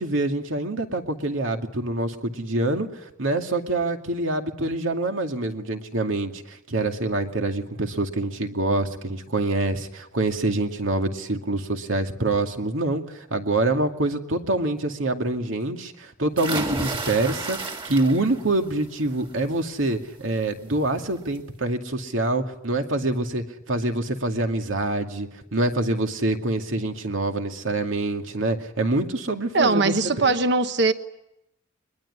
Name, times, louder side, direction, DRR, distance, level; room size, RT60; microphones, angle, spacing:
voice 1, 0.0-2.9 3.2-30.3, right 2 dB, 85° right, 2.4 m, -26 dB
sound 1, 16.4-18.5 18.9-19.3 20.7-20.8 21.2-21.3, right 2 dB, 25° right, 2.8 m, -31 dB
voice 2, 29.5-30.9, right 3 dB, 60° right, 1.2 m, -20 dB
22.5 x 21.5 x 9.7 m
head